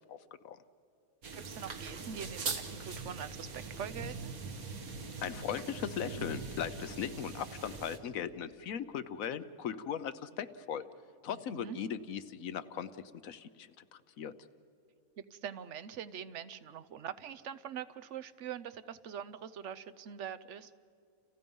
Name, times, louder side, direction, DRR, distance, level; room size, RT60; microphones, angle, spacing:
sound 1, 1.2-8.0, right 4 dB, 85° right, 2.0 m, -42 dB
voice 1, 1.4-4.3 11.3-11.8 15.3-20.7, right 8 dB, 60° right, 13 dB, 1.0 m, -43 dB
voice 2, 5.2-10.8 11.2-14.3, left 8 dB, 75° left, 13 dB, 1.2 m, -38 dB
29.5 x 29.5 x 5.4 m, 2.4 s
omnidirectional pair, 1.5 m